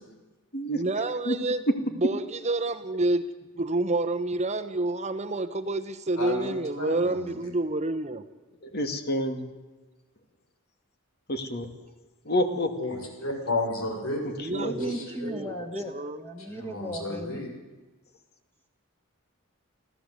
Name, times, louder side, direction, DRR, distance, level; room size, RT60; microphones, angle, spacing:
voice 1, 0.7-1.6 2.0-3.3 3.6-8.2 14.4-16.2, right 2 dB, 30° right, 9 dB, 1.0 m, -29 dB
voice 2, 6.2-6.5 6.8-7.3 12.8-14.2 14.9-15.3 16.5-17.5, left 2 dB, 85° left, 3 dB, 6.7 m, -32 dB
voice 3, 8.7-9.5 11.3-11.7 12.3-12.7 14.4-14.8, equal, 50° left, 7 dB, 2.4 m, -28 dB
voice 4, 14.6-17.5, equal, 10° left, 2 dB, 2.3 m, -36 dB
25.0 x 15.5 x 8.2 m, 1.2 s
head